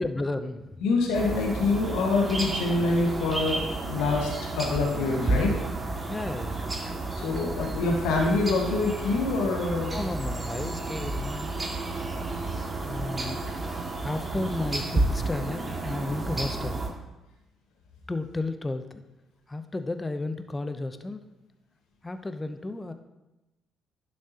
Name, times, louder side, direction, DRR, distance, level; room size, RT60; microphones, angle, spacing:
voice 1, 0.0-0.8 6.1-6.7 9.9-11.5 12.8-13.5 14.0-16.8 18.1-18.8 19.5-21.2 22.0-22.9, left 2 dB, 20° left, 9 dB, 0.7 m, -33 dB
voice 2, 0.8-5.5 7.1-10.0 13.2-13.5, left 3 dB, 75° left, 0 dB, 1.5 m, -26 dB
sound 1, 1.1-16.9, right 2 dB, 30° right, 2.0 m, -31 dB
11.0 x 6.4 x 2.9 m, 1.0 s
hypercardioid pair, 50°, 0 cm